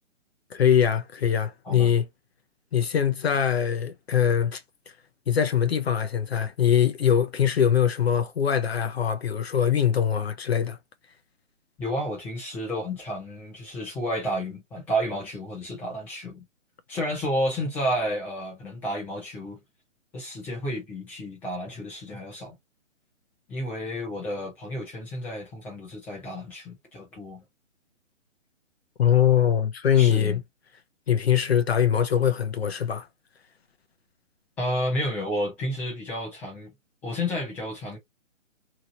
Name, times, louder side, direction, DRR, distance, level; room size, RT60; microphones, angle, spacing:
voice 1, 0.5-2.0 2.7-4.9 5.3-10.8 29.0-30.4 31.1-33.1, left 9 dB, 55° left, 0.5 m, -22 dB
voice 2, 11.8-16.4 16.9-19.6 20.1-22.5 23.5-27.4 30.0-30.4 34.6-36.7 37.0-38.0, equal, 5° left, 0.6 m, -31 dB
2.9 x 2.7 x 2.5 m
hypercardioid pair, 150°, 38 cm